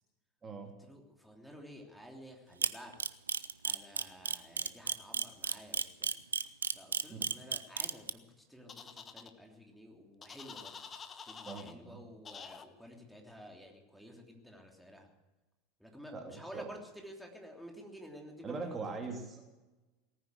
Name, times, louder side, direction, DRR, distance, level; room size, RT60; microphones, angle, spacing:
voice 1, 0.8-3.0 3.6-6.1 6.7-10.8 11.2-15.1 15.8-19.0 19.4-19.5, equal, ahead, 1 dB, 3.1 m, -52 dB
Camera, 2.6-8.1, right 6 dB, 80° right, 0.6 m, -32 dB
sound 1, 8.7-9.3 10.2-11.7 12.3-12.7, left 6 dB, 30° left, 1.1 m, -48 dB
voice 2, 11.5-12.0 16.1-16.7 18.4-19.4, right 4 dB, 25° right, 2 dB, 2.9 m, -41 dB
18.5 x 9.8 x 8.1 m, 1.1 s
figure-of-eight pair, 80°, 0 cm